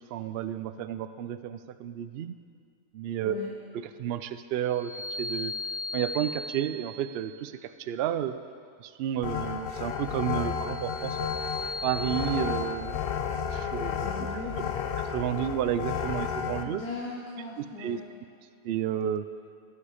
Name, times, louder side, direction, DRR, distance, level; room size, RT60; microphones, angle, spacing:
voice 1, 0.1-2.3 2.9-3.4 3.7-5.5 5.9-8.3 8.8-11.3 11.8-13.0 13.5-14.1 15.0-16.8 17.6-18.0 18.6-19.2, right 10 dB, 80° right, 11 dB, 0.5 m, -31 dB
sound 1, 4.7-7.2 10.2-12.3, left 3 dB, 40° left, 3.8 m, -37 dB
sound 2, 9.2-16.6, left 7 dB, 60° left, 0.6 m, -32 dB
voice 2, 13.9-14.5 16.6-18.0, left 3 dB, 85° left, -2 dB, 1.6 m, -38 dB
18.5 x 6.9 x 5.0 m, 2.3 s
omnidirectional pair, 1.6 m